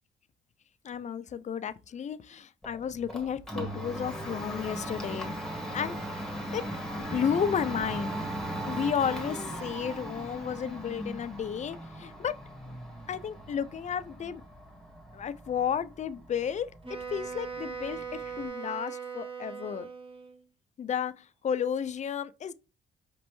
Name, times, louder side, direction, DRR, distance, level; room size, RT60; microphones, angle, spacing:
voice 1, 0.8-5.3 5.7-6.0 6.5-6.6 7.1-8.2 8.6-12.3 13.1-14.4 15.1-16.7 17.1-19.9 20.8-22.5, left 8 dB, 35° left, 0.4 m, -32 dB
Domestic sounds home sounds, 2.6-18.5, right 1 dB, 5° left, 1.3 m, -38 dB
Wind instrument woodwind instrument, 16.8-20.4, right 6 dB, 25° right, 1.0 m, -39 dB
5.1 x 3.1 x 3.0 m
cardioid pair, 90°, 20 cm